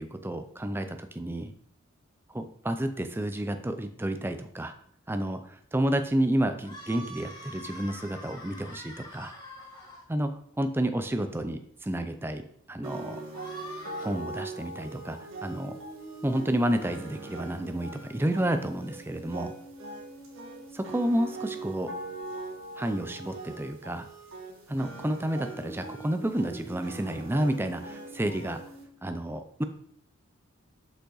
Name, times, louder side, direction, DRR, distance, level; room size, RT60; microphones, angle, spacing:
voice 1, 0.0-1.5 2.3-4.7 5.1-9.3 10.1-12.4 12.7-13.2 14.0-15.8 16.2-19.5 20.7-21.9 22.8-24.1 24.7-28.6 29.0-29.6, right 1 dB, 10° right, 8 dB, 0.4 m, -30 dB
sound 1, 6.6-10.0 13.3-14.1, equal, 20° left, 2.6 m, -44 dB
sound 2, 12.8-28.8, right 2 dB, 70° right, 1.6 m, -41 dB
6.3 x 5.4 x 3.9 m, 0.65 s
head